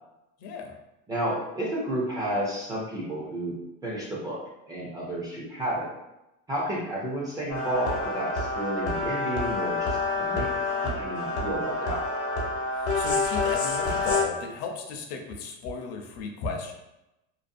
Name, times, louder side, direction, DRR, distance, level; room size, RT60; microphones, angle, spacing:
voice 1, 0.4-0.8 12.7-16.7, left 5 dB, 50° left, 3 dB, 0.5 m, -35 dB
voice 2, 1.1-3.6 3.8-4.4 4.7-5.9 6.5-10.5 10.8-12.0, right 1 dB, 10° right, -5 dB, 0.3 m, -31 dB
sound 1, 7.5-14.2, left 3 dB, 80° left, 0.8 m, -28 dB
2.6 x 2.2 x 2.5 m, 0.93 s
supercardioid pair, 145°, 33 cm